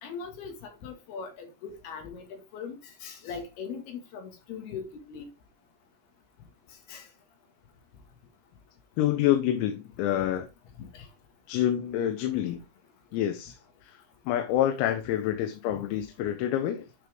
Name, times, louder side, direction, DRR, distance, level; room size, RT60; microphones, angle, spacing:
voice 1, 0.0-5.3 6.9-7.1 10.8-11.1 15.7-15.8, left 6 dB, 60° left, 3.3 m, -40 dB
voice 2, 9.0-10.5 11.5-12.6 13.1-13.6 13.8-14.0 14.3-16.9, left 11 dB, 85° left, 3.7 m, -27 dB
9.8 x 6.1 x 3.5 m
omnidirectional pair, 6.0 m